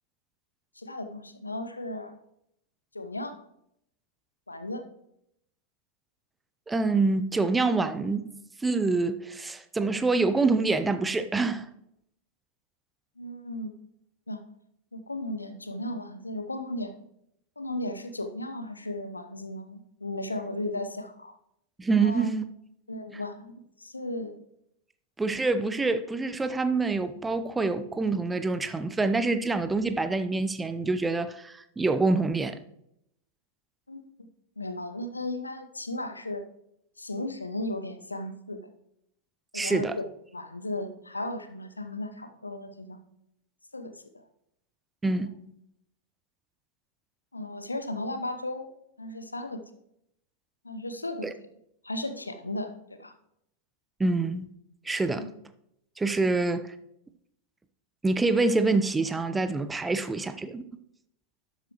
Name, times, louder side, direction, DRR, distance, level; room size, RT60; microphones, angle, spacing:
voice 1, 0.8-2.1 2.9-3.4 4.5-4.8 13.2-13.7 14.3-14.4 14.9-16.9 17.6-21.3 22.0-22.3 22.9-24.4 33.9-34.0 34.6-36.4 37.0-38.6 39.5-40.1 40.3-43.0 43.7-44.2 47.3-48.7 49.0-49.6 50.6-51.3 51.8-52.7 53.0-53.1 55.1-55.3, left 1 dB, 80° left, 0.8 m, -35 dB
voice 2, 6.7-8.3 8.6-11.7 21.8-22.5 25.2-32.6 39.5-40.0 45.0-45.3 51.2-51.3 54.0-54.5 54.8-55.3 56.0-56.7 58.0-60.6, right 3 dB, 10° right, 0.6 m, -26 dB
12.0 x 8.1 x 3.0 m
figure-of-eight pair, 90°, 0 cm